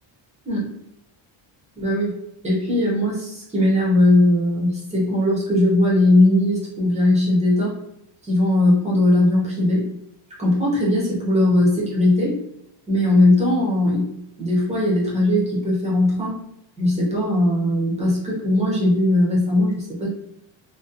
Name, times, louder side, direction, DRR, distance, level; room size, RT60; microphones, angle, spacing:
voice 1, 1.8-2.2 2.4-7.8 8.2-9.9 10.4-12.4 12.9-14.1 14.4-16.4 16.8-20.1, left 1 dB, 15° right, -5 dB, 0.6 m, -19 dB
2.6 x 2.2 x 2.4 m, 0.82 s
cardioid pair, 180°, 47 cm